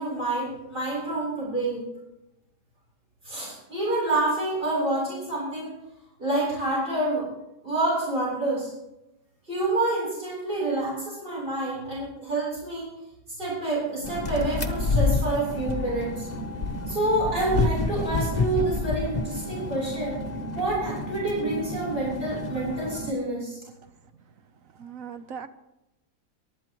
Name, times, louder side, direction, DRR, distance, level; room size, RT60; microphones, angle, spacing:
voice 1, 0.0-1.8 3.2-5.8 6.2-7.3 7.6-8.7 9.5-12.9 13.4-16.3 16.9-20.2 20.6-23.6, right 2 dB, 35° right, -6 dB, 7.4 m, -28 dB
sound 1, 14.0-23.1, left 3 dB, 30° left, 1.0 m, -29 dB
voice 2, 24.8-25.5, right 7 dB, 60° right, 10 dB, 1.2 m, -38 dB
28.5 x 12.0 x 3.0 m, 0.92 s
omnidirectional pair, 1.7 m